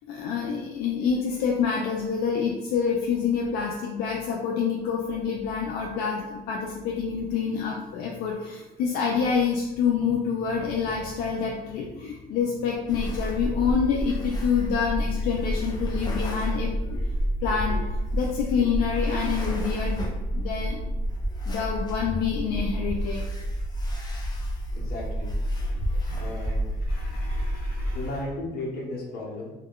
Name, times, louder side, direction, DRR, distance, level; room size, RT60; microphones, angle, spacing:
voice 1, 0.1-17.0 17.4-17.8 18.1-20.8 21.5-23.2 26.1-26.2 26.9-28.0, left 6 dB, 90° left, -1 dB, 0.4 m, -27 dB
sound 1, 12.9-28.1, equal, 25° left, 0.6 m, -29 dB
voice 2, 24.7-25.4 26.2-26.7 27.9-29.5, left 2 dB, 65° left, -3 dB, 0.9 m, -34 dB
2.3 x 2.2 x 3.6 m, 1.0 s
cardioid pair, 110°, 17 cm